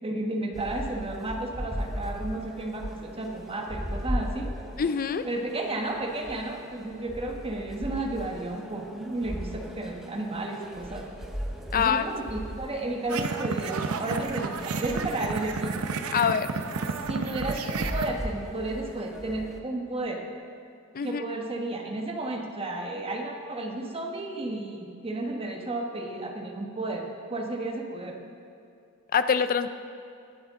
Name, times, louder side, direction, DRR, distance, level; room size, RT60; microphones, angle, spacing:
voice 1, 0.0-4.5 5.2-11.1 11.7-15.7 17.1-20.2 21.0-28.2, right 2 dB, 25° right, 2 dB, 1.2 m, -33 dB
sound 1, 0.5-19.6, equal, ahead, 0.9 m, -38 dB
voice 2, 4.8-5.3 11.7-12.1 16.1-16.5 20.9-21.2 29.1-29.7, left 7 dB, 40° left, 11 dB, 0.5 m, -25 dB
sound 2, 13.1-18.1, right 4 dB, 75° right, 0.7 m, -31 dB
20.5 x 7.9 x 3.7 m, 2.5 s
head